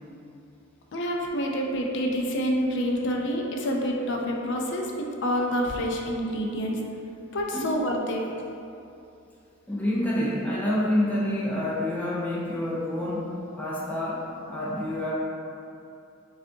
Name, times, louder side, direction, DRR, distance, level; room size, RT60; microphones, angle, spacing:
voice 1, 0.9-6.8 7.3-8.2, equal, 55° left, 0 dB, 0.4 m, -27 dB
voice 2, 9.7-15.1, left 1 dB, 5° left, -8 dB, 0.6 m, -28 dB
5.0 x 2.4 x 2.7 m, 2.7 s
head